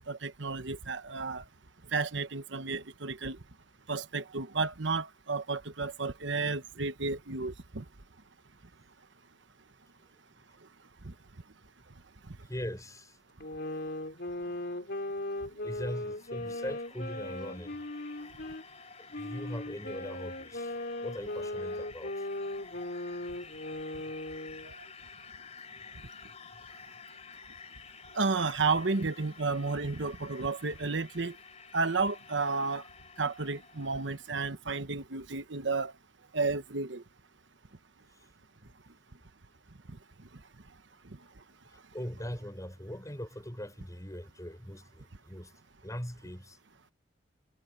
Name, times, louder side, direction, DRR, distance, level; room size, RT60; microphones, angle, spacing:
voice 1, 0.1-1.4 1.9-3.4 3.9-7.8 11.0-11.1 24.7-24.8 28.1-31.4 31.7-32.8 33.2-35.9 36.3-37.0, right 4 dB, 65° right, 1.2 m, -32 dB
voice 2, 12.5-13.1 15.6-17.8 19.0-20.7 21.0-22.2 41.9-45.5 45.8-46.6, equal, 15° left, 6.3 m, -40 dB
sound 1, 13.4-18.6 19.1-24.7, left 1 dB, 55° left, 3.5 m, -38 dB
sound 2, 15.9-34.5, left 5 dB, 35° left, 4.0 m, -52 dB
head